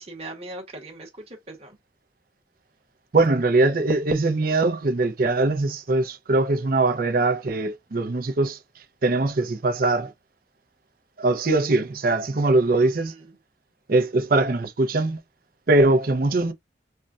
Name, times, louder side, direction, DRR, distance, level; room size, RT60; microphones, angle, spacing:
voice 1, 0.0-1.8 12.7-13.4, right 2 dB, 35° right, 1.0 m, -40 dB
voice 2, 3.1-8.6 9.0-10.1 11.2-13.1 13.9-15.2 15.7-16.5, right 2 dB, 55° right, 0.6 m, -21 dB
5.3 x 2.2 x 2.4 m
head